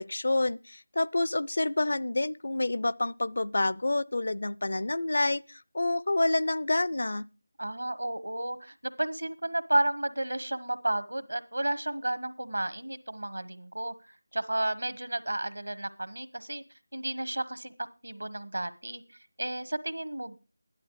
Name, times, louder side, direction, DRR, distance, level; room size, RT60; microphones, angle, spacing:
voice 1, 0.0-7.3, left 2 dB, 60° left, 0.5 m, -28 dB
voice 2, 7.6-13.9 14.3-16.6 16.9-19.0 19.4-20.4, right 1 dB, 80° right, 1.3 m, -32 dB
12.5 x 11.5 x 4.9 m
figure-of-eight pair, 165°, 0 cm